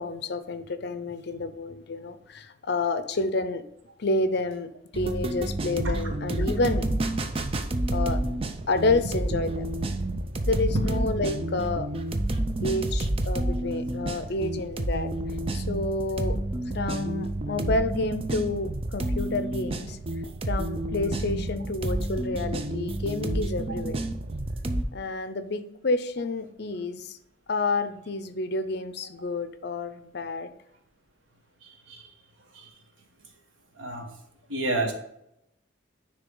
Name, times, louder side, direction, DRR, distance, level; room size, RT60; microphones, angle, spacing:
voice 1, 0.0-3.6 4.0-6.9 7.9-8.2 8.7-9.6 10.5-11.9 12.6-15.1 15.5-16.4 16.7-20.0 20.5-24.0 24.9-27.2 27.5-30.5, left 2 dB, 60° left, 11 dB, 0.6 m, -29 dB
sound 1, 4.9-24.8, right 1 dB, 30° right, 0.5 m, -29 dB
voice 2, 13.1-13.5 31.6-32.1 32.5-32.7 33.8-34.1 34.5-34.9, right 2 dB, 85° right, 4 dB, 1.3 m, -31 dB
9.7 x 3.3 x 3.8 m, 0.80 s
head